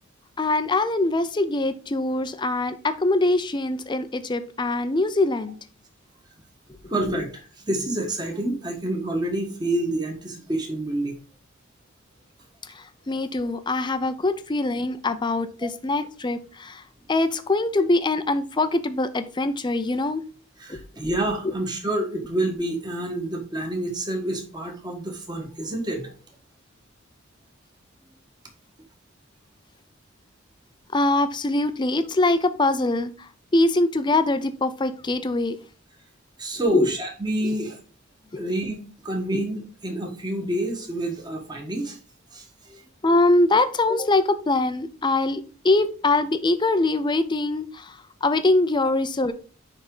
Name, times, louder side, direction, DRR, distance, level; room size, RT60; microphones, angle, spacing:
voice 1, 0.4-5.6 6.8-7.2 12.7-16.8 17.1-20.2 20.7-20.8 30.9-35.6 36.7-36.9 37.4-37.5 39.3-39.4 43.0-49.3, left 2 dB, 20° left, 12 dB, 0.5 m, -23 dB
voice 2, 6.9-11.2 15.6-15.7 20.6-26.1 36.4-37.8 38.4-42.0 42.3-42.8, right 1 dB, 20° right, 2 dB, 1.5 m, -28 dB
9.6 x 3.6 x 3.8 m, 0.39 s
head